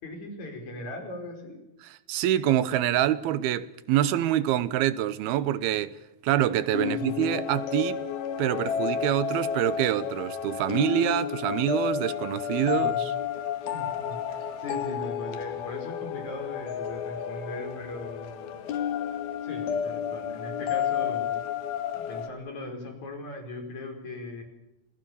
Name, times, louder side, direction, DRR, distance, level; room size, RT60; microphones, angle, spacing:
voice 1, 0.0-1.6 6.8-7.3 12.6-13.0 13.6-18.6 19.4-21.4 21.9-24.4, left 2 dB, 45° left, 6.3 m, -39 dB
voice 2, 1.8-6.0 6.2-8.0 8.4-13.1, right 12 dB, 80° right, 2.9 m, -26 dB
sound 1, 6.7-22.3, left 8 dB, 75° left, 3.3 m, -31 dB
28.0 x 20.0 x 7.0 m
omnidirectional pair, 4.5 m